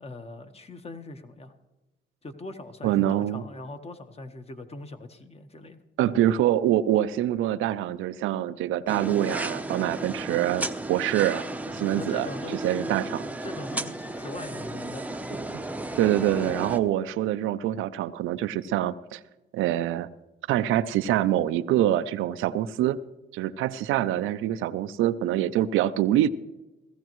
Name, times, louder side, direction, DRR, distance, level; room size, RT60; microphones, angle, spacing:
voice 1, 0.0-1.5 2.2-5.8 11.8-12.9 13.2-15.4, left 2 dB, 30° left, 8 dB, 1.2 m, -41 dB
voice 2, 2.8-3.4 6.0-11.4 11.7-12.3 12.6-13.2 16.0-19.2 19.5-20.1 20.5-23.0 23.3-26.3, right 12 dB, 90° right, 13 dB, 0.5 m, -25 dB
sound 1, 8.9-16.8, right 2 dB, 5° right, 0.7 m, -34 dB
17.5 x 14.5 x 3.1 m, 1.0 s
cardioid pair, 90°, 20 cm